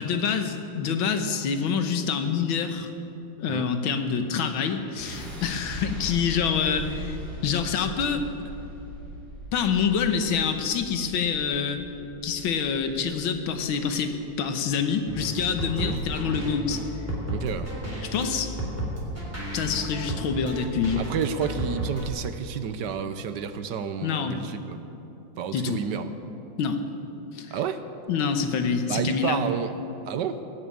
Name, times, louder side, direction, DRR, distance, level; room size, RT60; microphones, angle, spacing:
voice 1, 0.0-2.9 3.4-7.2 7.4-8.2 9.5-11.8 12.2-16.8 18.0-18.5 19.5-21.1 24.0-24.4 25.5-25.8 26.6-26.8 27.3-27.5 28.1-29.4, left 6 dB, 80° left, 7 dB, 1.8 m, -26 dB
sound 1, 5.0-17.0, equal, 50° right, 4.2 m, -40 dB
sound 2, 15.1-22.1, right 1 dB, 5° right, 3.0 m, -33 dB
voice 2, 17.3-17.7 21.0-24.8 25.4-26.1 27.5-27.8 28.9-29.7 30.1-30.4, right 7 dB, 70° right, 10 dB, 1.2 m, -30 dB
20.0 x 6.9 x 8.7 m, 2.9 s
omnidirectional pair, 2.2 m